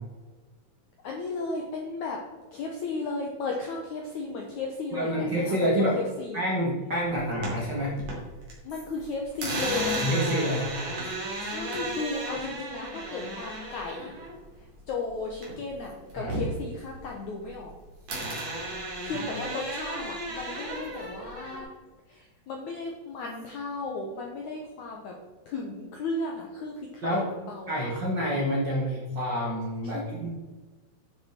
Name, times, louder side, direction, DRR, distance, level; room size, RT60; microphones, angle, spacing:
voice 1, 1.0-2.2 2.5-6.4 7.1-7.3 8.6-10.2 11.4-14.2 14.6-17.7 18.8-21.7 22.1-25.2 25.5-27.7 29.8-30.3, left 3 dB, 80° left, 0 dB, 1.7 m, -35 dB
voice 2, 4.9-6.0 6.3-7.9 10.0-10.7 16.2-16.3 27.0-27.3 27.7-30.3, equal, 75° right, -3 dB, 0.9 m, -27 dB
sound 1, 7.1-8.5 8.8-15.8 16.1-17.7 18.1-21.6, right 1 dB, 40° right, 3.1 m, -34 dB
10.0 x 7.0 x 4.4 m, 1.3 s
omnidirectional pair, 4.8 m